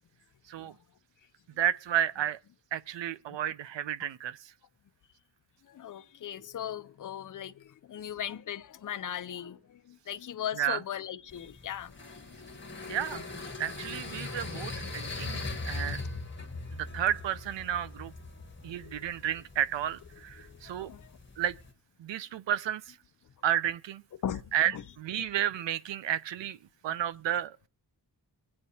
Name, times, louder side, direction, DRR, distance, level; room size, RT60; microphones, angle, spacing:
voice 1, 1.6-2.4 2.7-4.4 10.6-10.8 12.9-13.3 13.6-16.0 16.8-18.1 18.6-20.9 21.4-21.6 22.0-23.0 23.4-24.0 24.5-24.7 25.0-26.6 26.8-27.7, right 11 dB, 75° right, 0.6 m, -32 dB
voice 2, 5.6-11.9 12.3-12.7 14.2-14.9 15.3-16.8 18.8-19.1 20.4-21.2 23.2-23.3 24.2-24.8, left 9 dB, 45° left, 0.6 m, -40 dB
sound 1, 11.3-21.7, left 3 dB, 25° left, 1.5 m, -41 dB
23.0 x 8.7 x 2.8 m
wide cardioid pair, 90°, 45 cm